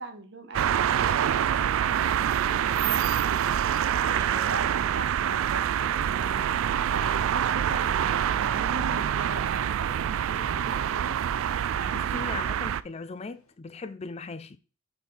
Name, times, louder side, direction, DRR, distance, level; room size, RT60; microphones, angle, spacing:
voice 1, 0.0-3.6 4.1-6.5 6.9-11.2, right 2 dB, 55° right, 1.1 m, -40 dB
sound 1, 0.5-12.8, right 9 dB, 75° right, 0.3 m, -26 dB
Thunder / Rain, 8.1-13.5, left 2 dB, 80° left, 1.1 m, -54 dB
voice 2, 11.8-14.6, left 4 dB, 30° left, 0.4 m, -38 dB
5.9 x 4.5 x 4.0 m
head